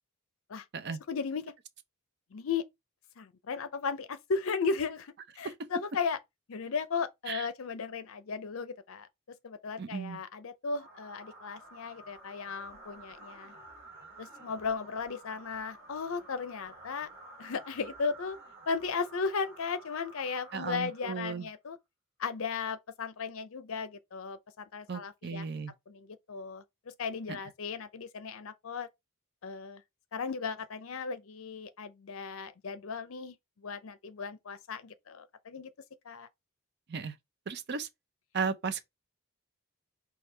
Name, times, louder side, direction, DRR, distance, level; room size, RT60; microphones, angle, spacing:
voice 1, 1.1-1.5 2.3-2.6 3.2-6.2 6.5-13.5 14.2-17.1 17.4-18.4 18.7-21.8 22.2-25.5 25.9-28.9 29.4-29.8 30.1-35.7 36.0-36.3, left 5 dB, 65° left, 0.5 m, -36 dB
voice 2, 9.8-10.2 20.5-21.5 24.9-25.7 27.3-27.4 36.9-37.2 37.5-37.9 38.3-38.8, right 5 dB, 50° right, 0.5 m, -35 dB
sound 1, 10.7-21.5, right 2 dB, 10° right, 2.6 m, -52 dB
4.4 x 2.4 x 3.3 m
head